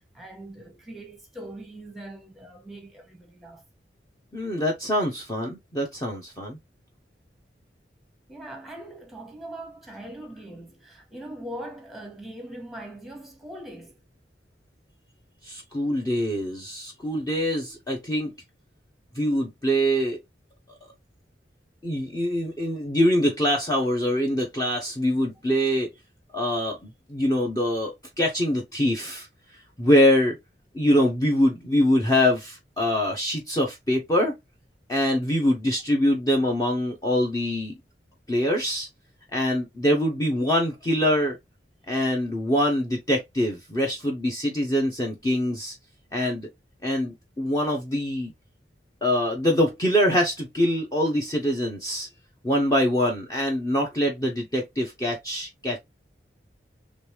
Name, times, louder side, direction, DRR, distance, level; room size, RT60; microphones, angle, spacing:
voice 1, 0.1-3.6 8.3-14.0, right 1 dB, ahead, 1.0 m, -41 dB
voice 2, 4.3-6.6 15.4-18.3 19.1-20.2 21.8-25.9 26.3-29.3 29.8-30.4 30.7-34.3 34.9-37.7 38.3-38.9 39.3-41.4 41.9-45.8 46.1-46.5 46.8-48.3 49.0-52.1 52.4-55.8, equal, 20° left, 0.7 m, -24 dB
3.1 x 3.1 x 3.2 m
head